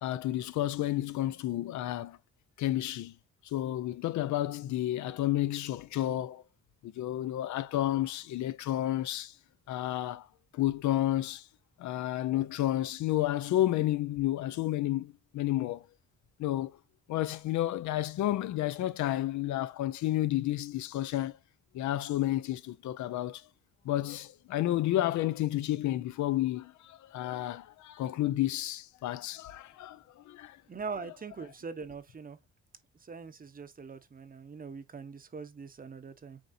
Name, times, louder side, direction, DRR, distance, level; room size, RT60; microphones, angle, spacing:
voice 1, 0.0-2.2 2.6-3.1 3.4-6.4 6.8-9.4 9.7-10.3 10.5-11.5 11.8-15.8 16.4-16.7 17.1-21.4 21.7-23.5 23.8-30.6, left 14 dB, 70° left, 0.5 m, -31 dB
voice 2, 30.7-32.4 33.0-36.4, right 5 dB, 30° right, 0.8 m, -42 dB
7.3 x 2.7 x 2.6 m
cardioid pair, 90°, 30 cm